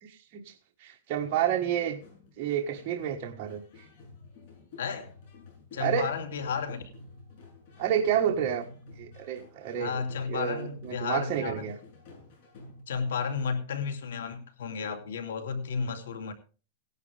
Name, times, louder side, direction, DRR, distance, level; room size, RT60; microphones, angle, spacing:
voice 1, 0.0-0.5 0.8-2.0 2.4-3.6 5.8-6.1 7.8-8.6 9.0-10.0 10.3-11.7, right 9 dB, 35° right, 1.5 m, -29 dB
sound 1, 2.0-12.8, left 2 dB, 50° left, 7.3 m, -51 dB
voice 2, 4.8-5.1 5.7-6.8 9.8-11.7 12.9-16.3, left 6 dB, 90° left, 2.8 m, -32 dB
17.5 x 11.0 x 3.5 m
supercardioid pair, 160°, 0 cm